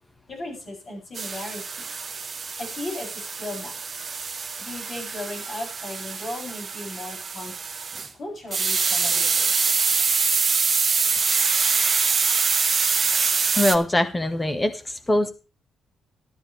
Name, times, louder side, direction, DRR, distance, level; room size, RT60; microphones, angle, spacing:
voice 1, 0.3-1.9 2.6-3.9 4.6-7.5 8.2-9.5, left 2 dB, 35° left, -1 dB, 7.9 m, -36 dB
sound 1, 1.1-8.1 8.5-13.8, right 5 dB, 30° right, 1.2 m, -24 dB
voice 2, 13.5-15.3, left 1 dB, 15° left, 8 dB, 1.6 m, -22 dB
13.0 x 12.0 x 3.4 m, 0.33 s
cardioid pair, 125°, 0 cm